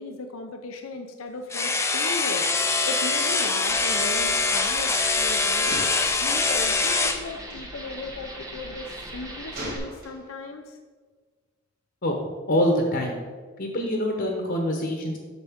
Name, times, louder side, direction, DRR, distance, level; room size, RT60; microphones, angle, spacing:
voice 1, 0.0-5.8 6.2-10.8, left 3 dB, 85° left, 5 dB, 0.6 m, -37 dB
sound 1, 1.5-7.2, left 3 dB, 15° left, 0.5 m, -24 dB
sound 2, 2.7-9.8, right 1 dB, 15° right, 1.1 m, -41 dB
Gunshot gunfire, 5.6-6.6 7.4-7.6 9.5-10.5, right 1 dB, 45° right, 2.2 m, -37 dB
voice 2, 12.5-13.2 13.6-15.2, equal, 50° left, 1 dB, 1.0 m, -25 dB
8.2 x 6.4 x 3.6 m, 1.5 s
head